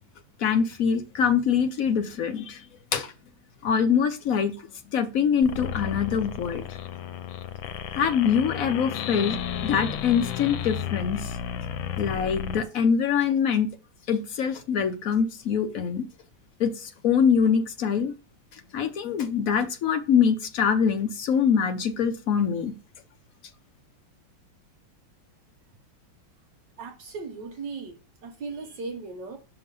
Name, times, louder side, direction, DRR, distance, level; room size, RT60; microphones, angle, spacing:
voice 1, 0.4-2.6 2.9-3.1 3.6-4.6 4.9-6.6 7.9-9.4 9.6-11.4 12.0-13.7 14.1-16.0 16.6-18.1 18.7-22.7, left 7 dB, 60° left, 0.9 m, -24 dB
sound 1, 5.4-12.6, left 9 dB, 90° left, 1.4 m, -33 dB
voice 2, 26.8-29.4, right 4 dB, 65° right, 1.6 m, -37 dB
6.0 x 3.5 x 5.3 m
omnidirectional pair, 2.1 m